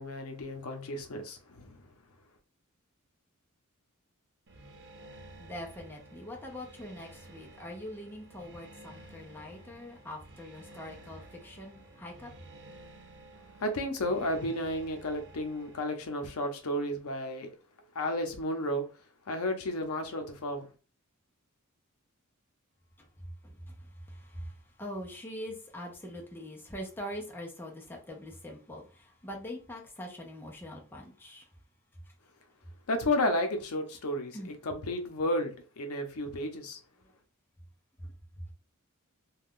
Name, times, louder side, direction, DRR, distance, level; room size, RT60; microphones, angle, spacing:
voice 1, 0.0-1.8 13.6-17.5 17.9-18.9 19.3-20.7 32.9-36.8, left 1 dB, 75° left, 0.6 m, -32 dB
sound 1, 4.5-15.8, right 2 dB, 55° right, 0.6 m, -52 dB
voice 2, 5.4-12.3 23.0-23.1 23.4-31.5 34.3-34.5 38.0-38.1, equal, 10° left, 0.6 m, -43 dB
2.4 x 2.3 x 3.6 m
head